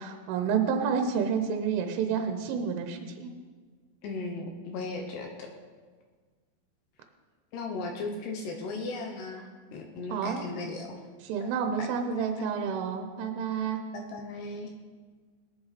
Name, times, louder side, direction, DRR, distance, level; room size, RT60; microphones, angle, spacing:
voice 1, 0.0-3.3 10.1-10.4 11.3-13.8, right 6 dB, 85° right, 5 dB, 3.4 m, -29 dB
voice 2, 4.0-5.5 7.5-11.0 11.4-11.5 11.8-12.8 13.9-14.7, left 3 dB, 70° left, 3 dB, 2.8 m, -37 dB
18.5 x 11.0 x 4.1 m, 1.5 s
omnidirectional pair, 5.5 m